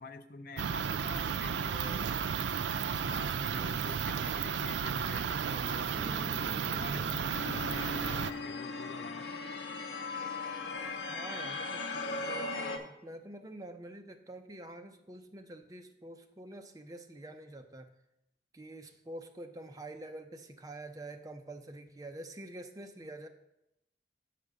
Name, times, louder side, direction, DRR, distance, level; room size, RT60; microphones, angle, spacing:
voice 1, 0.0-2.1 2.7-5.9 6.8-9.3, left 4 dB, 55° left, 9 dB, 0.5 m, -47 dB
sound 1, 0.6-8.3, right 7 dB, 85° right, 0.4 m, -33 dB
Piano, 5.9-14.0, left 1 dB, 15° left, 1.4 m, -51 dB
sound 2, 7.3-12.8, left 3 dB, 85° left, 0.8 m, -38 dB
voice 2, 11.1-17.9 18.5-23.3, right 1 dB, 20° right, 6 dB, 0.5 m, -47 dB
5.9 x 5.0 x 6.6 m, 0.86 s
head